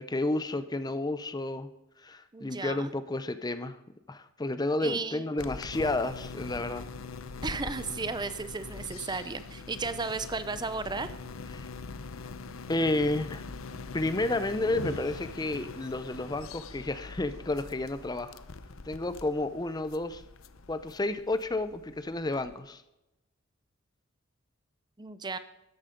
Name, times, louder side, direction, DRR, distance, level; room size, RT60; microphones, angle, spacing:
voice 1, 0.0-1.7 2.0-3.8 4.1-6.8 11.5-11.7 12.7-13.4 13.9-18.4 18.9-20.2 20.7-22.8, left 2 dB, 20° left, 12 dB, 0.6 m, -31 dB
voice 2, 2.3-2.9 4.8-5.3 7.4-11.1 25.0-25.4, right 4 dB, 20° right, 12 dB, 0.6 m, -34 dB
sound 1, 5.4-22.6, left 4 dB, 80° left, 0.8 m, -43 dB
13.5 x 10.5 x 5.1 m, 0.91 s
head